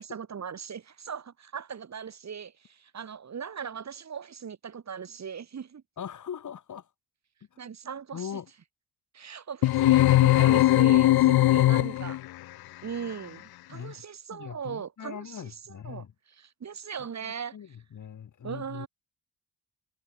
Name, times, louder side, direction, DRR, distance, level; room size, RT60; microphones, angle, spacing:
voice 1, 0.0-5.8 7.6-8.3 9.1-12.2 12.8-15.5 15.8-16.0 16.4-17.6 18.4-18.9, right 7 dB, 45° right, 5.5 m, -39 dB
voice 2, 6.0-6.9 7.5-7.7 8.1-8.5 13.7-14.0 14.3-16.1 17.2-18.9, left 8 dB, 50° left, 2.9 m, -41 dB
sound 1, 9.6-12.3, left 15 dB, 75° left, 0.7 m, -20 dB
cardioid pair, 125°, 38 cm